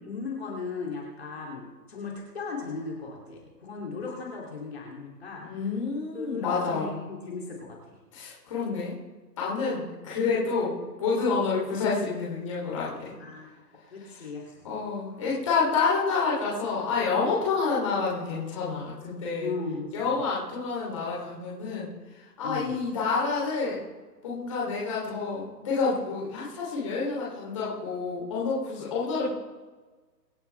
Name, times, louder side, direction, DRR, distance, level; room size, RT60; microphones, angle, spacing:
voice 1, 0.0-5.4 6.1-8.0 13.2-13.5 13.9-14.6 19.4-20.2 22.4-22.8, left 4 dB, 40° left, -2 dB, 2.9 m, -37 dB
voice 2, 5.4-7.0 8.1-8.9 9.4-13.1 14.1-14.3 14.6-19.5 19.9-21.9 22.4-23.8 24.2-29.3, left 4 dB, 20° left, -5 dB, 3.1 m, -28 dB
25.0 x 8.6 x 3.4 m, 1.3 s
hypercardioid pair, 175°, 50 cm